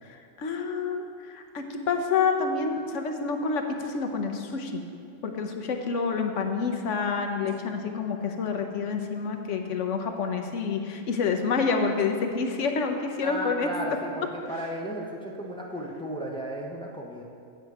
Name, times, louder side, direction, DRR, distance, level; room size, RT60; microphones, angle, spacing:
voice 1, 0.0-4.8 5.2-13.7, left 5 dB, 70° left, 4 dB, 1.1 m, -28 dB
voice 2, 13.2-17.2, right 1 dB, 5° left, -2 dB, 0.8 m, -34 dB
8.1 x 8.0 x 4.7 m, 2.3 s
omnidirectional pair, 1.3 m